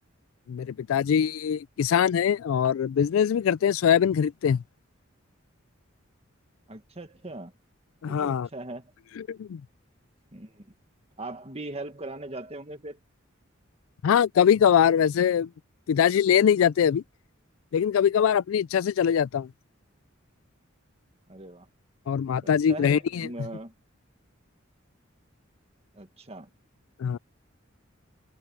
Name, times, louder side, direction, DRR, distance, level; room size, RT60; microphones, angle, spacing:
voice 1, 0.5-4.6 8.0-8.5 9.2-9.6 14.0-15.5 15.9-17.0 17.7-19.5 22.1-23.3 27.0-27.2, left 8 dB, 85° left, 0.3 m, -22 dB
voice 2, 6.7-7.5 8.0-8.9 10.3-10.7 11.2-13.0 21.3-21.7 22.4-23.7 25.9-26.5, right 2 dB, 30° right, 1.8 m, -40 dB
head